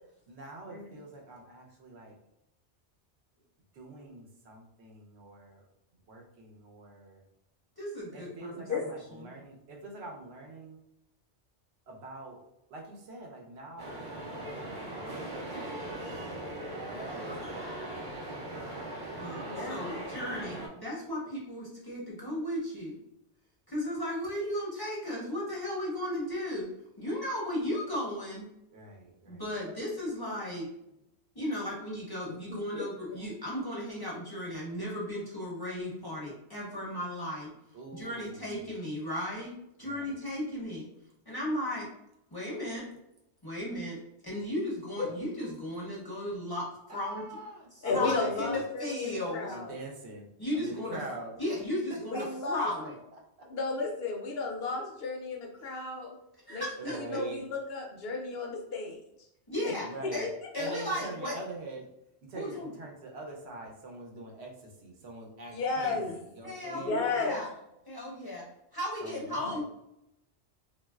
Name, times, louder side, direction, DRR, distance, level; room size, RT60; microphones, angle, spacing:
voice 1, 0.3-2.2 3.7-5.7 6.1-7.2 8.1-10.8 11.9-12.4 12.7-16.5 16.8-18.8 28.7-29.6 37.7-38.7 39.8-40.2 46.9-48.6 49.5-50.3 50.5-51.4 51.9-52.5 53.1-53.5 55.6-55.9 56.8-57.4 59.8-61.9 62.2-67.2 69.0-69.6, right 2 dB, 70° right, 0 dB, 0.9 m, -45 dB
voice 2, 7.8-8.6 19.2-23.0 23.7-26.7 27.0-28.5 29.3-30.7 31.3-37.5 37.9-40.9 41.3-41.9 42.3-42.8 43.4-44.0 44.2-47.2 47.9-49.5 50.4-51.0 51.4-52.9 56.5-57.0 59.5-59.9 60.1-60.2 60.5-61.3 62.3-62.7 65.9-66.0 66.4-67.5 67.9-68.4 68.7-69.6, left 1 dB, 25° left, -6 dB, 0.5 m, -35 dB
sound 1, 13.8-20.7, right 1 dB, 30° right, 0.4 m, -39 dB
voice 3, 19.5-19.9 32.5-33.2 45.0-45.1 47.8-49.7 50.8-50.9 52.0-52.7 53.5-56.1 56.5-59.0 59.6-59.7 60.0-60.3 65.5-66.1 66.7-67.4, left 4 dB, 65° left, 0 dB, 0.7 m, -34 dB
3.0 x 2.4 x 2.3 m, 0.84 s
omnidirectional pair, 1.2 m